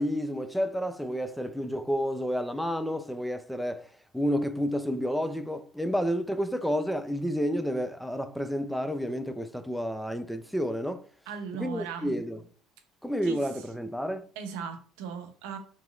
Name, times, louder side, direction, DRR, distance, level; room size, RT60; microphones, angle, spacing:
voice 1, 0.0-3.8 4.1-11.0 11.6-12.4 13.0-14.2, equal, ahead, 0.4 m, -30 dB
voice 2, 11.3-12.2 13.2-13.7 14.4-15.6, right 6 dB, 75° right, 0.6 m, -38 dB
3.0 x 2.8 x 2.3 m
hypercardioid pair, 75°, 0 cm